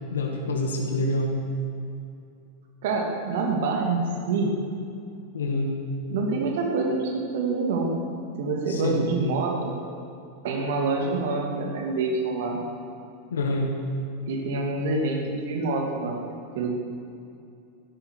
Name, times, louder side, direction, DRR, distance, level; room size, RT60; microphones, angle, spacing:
voice 1, 0.1-1.3 5.3-5.7 8.7-9.0 11.0-11.1 13.3-13.7, left 2 dB, 65° left, 1 dB, 1.9 m, -26 dB
voice 2, 2.8-4.6 6.1-8.0 8.4-9.8 10.4-12.6 14.3-16.2 16.5-16.8, right 3 dB, 55° right, 1 dB, 2.7 m, -26 dB
16.0 x 12.0 x 6.7 m, 2.5 s
figure-of-eight pair, 90°, 0 cm